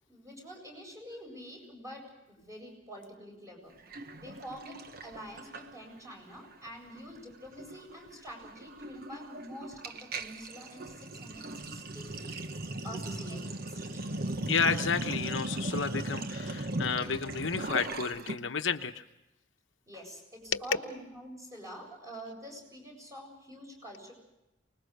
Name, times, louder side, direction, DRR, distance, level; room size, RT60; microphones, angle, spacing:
voice 1, 0.1-3.8 4.2-12.3 12.8-13.4 13.7-14.1 19.9-24.1, equal, 15° right, 1 dB, 7.8 m, -47 dB
Sink (filling or washing), 3.9-6.1 6.4-6.7 6.9-18.4, right 2 dB, 55° right, 1.1 m, -38 dB
voice 2, 14.5-19.0 20.5-20.6, left 5 dB, 75° left, 6 dB, 1.0 m, -31 dB
25.0 x 20.5 x 6.6 m, 0.94 s
head